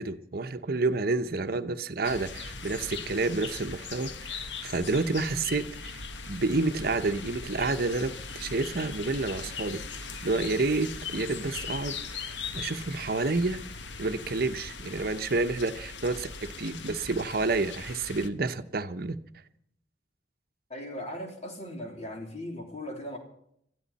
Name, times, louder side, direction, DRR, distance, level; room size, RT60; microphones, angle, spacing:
voice 1, 0.0-6.0 6.3-13.6 14.0-19.2, right 3 dB, 55° right, 0.9 m, -29 dB
sound 1, 2.0-18.3, left 5 dB, 70° left, 1.2 m, -40 dB
voice 2, 20.7-23.2, left 1 dB, 35° left, 3.3 m, -38 dB
22.0 x 14.0 x 4.2 m
head